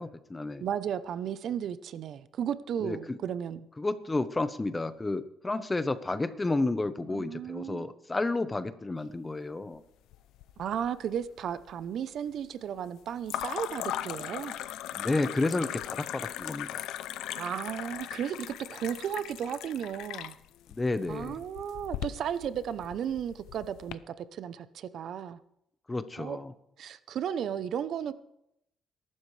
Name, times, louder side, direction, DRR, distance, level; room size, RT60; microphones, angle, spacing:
voice 1, 0.0-0.6 2.8-3.2 3.8-9.8 14.9-16.8 20.7-21.4 25.9-26.5, left 2 dB, 20° left, 12 dB, 1.0 m, -31 dB
voice 2, 0.6-3.7 7.0-7.9 10.6-14.5 17.3-20.3 21.1-25.4 26.2-26.4 26.8-28.1, right 9 dB, 70° right, 14 dB, 0.7 m, -34 dB
sound 1, 10.1-10.9 11.2-11.8 13.3-23.9, left 12 dB, 90° left, 0.6 m, -39 dB
22.0 x 12.0 x 3.3 m, 0.82 s
cardioid pair, 90°, 0 cm